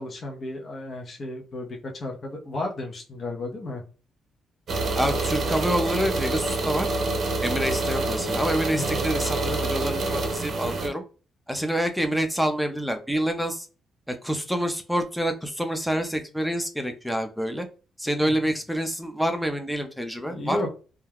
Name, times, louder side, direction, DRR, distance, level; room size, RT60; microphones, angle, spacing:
voice 1, 0.0-3.8 8.7-9.0 18.2-18.3 20.3-20.7, left 2 dB, 40° left, 0 dB, 0.6 m, -33 dB
sound 1, 4.7-10.9, right 2 dB, 50° right, 0.6 m, -27 dB
voice 2, 5.0-6.9 7.4-11.0 11.5-13.7 14.1-17.7 18.0-20.6, equal, ahead, 6 dB, 0.5 m, -27 dB
2.3 x 2.1 x 3.3 m, 0.36 s
cardioid pair, 90°, 0 cm